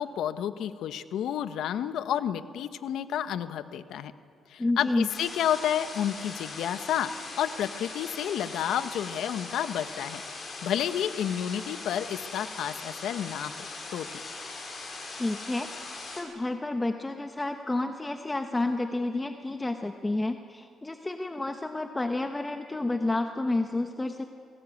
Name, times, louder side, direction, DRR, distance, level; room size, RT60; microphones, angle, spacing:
voice 1, 0.0-4.1 4.5-10.2 10.6-13.5 13.9-14.2, left 10 dB, 80° left, 11 dB, 1.1 m, -30 dB
voice 2, 4.6-5.1 15.2-24.2, left 2 dB, 15° left, 6 dB, 1.1 m, -30 dB
sound 1, 5.1-16.2, left 3 dB, 40° left, 6.7 m, -40 dB
25.5 x 18.5 x 8.4 m, 2.3 s
cardioid pair, 90°, 0 cm